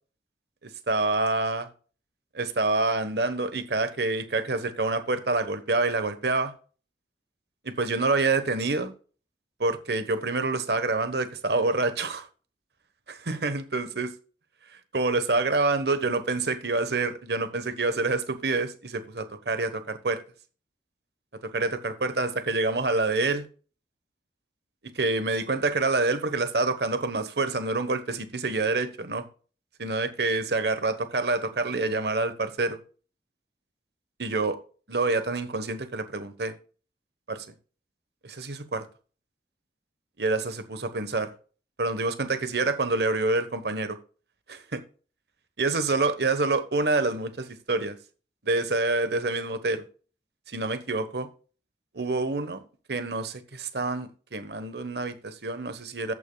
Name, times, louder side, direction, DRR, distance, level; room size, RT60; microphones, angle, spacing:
voice 1, 0.9-1.7 2.3-6.5 7.6-8.9 9.6-12.3 13.1-14.1 14.9-20.2 21.5-23.5 24.8-29.3 29.8-32.8 34.2-34.6 34.9-36.5 37.3-37.5 38.2-38.8 40.2-41.3 41.8-44.0 44.5-44.8 45.6-48.0 48.4-49.8 50.5-51.3 51.9-52.6 52.9-56.1, right 3 dB, 65° right, 1.2 m, -27 dB
13.5 x 8.8 x 2.3 m
head